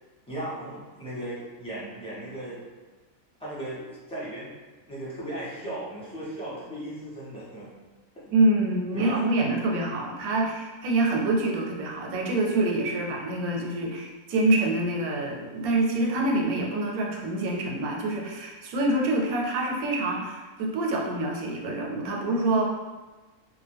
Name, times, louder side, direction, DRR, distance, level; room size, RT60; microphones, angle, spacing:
voice 1, 0.3-2.6 3.4-4.5 4.8-7.7 8.9-9.2, right 1 dB, 5° left, -10 dB, 0.5 m, -36 dB
voice 2, 8.3-22.6, right 2 dB, 85° right, 0 dB, 1.1 m, -26 dB
2.5 x 2.4 x 3.3 m, 1.2 s
omnidirectional pair, 1.5 m